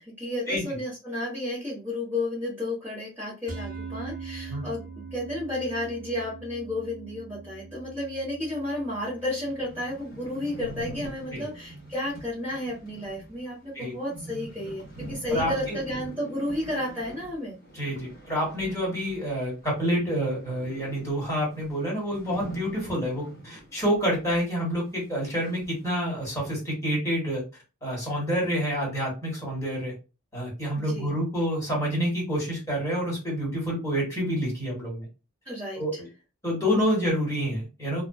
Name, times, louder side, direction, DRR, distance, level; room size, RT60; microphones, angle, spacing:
voice 1, 0.0-4.8 5.1-17.5 30.8-31.1 35.4-36.0, left 1 dB, 10° right, -9 dB, 1.2 m, -32 dB
sound 1, 3.5-13.9, right 5 dB, 40° right, 0.7 m, -44 dB
sound 2, 8.8-8.9 9.2-9.3 9.4-19.7 19.9-24.4 24.7-24.8 25.4-25.9, right 1 dB, 40° left, 1.2 m, -44 dB
voice 2, 15.3-15.8 17.7-27.4 27.8-29.9 30.3-35.1 35.7-36.1 36.4-38.1, equal, 15° left, -5 dB, 1.4 m, -28 dB
2.4 x 2.3 x 2.3 m, 0.31 s
head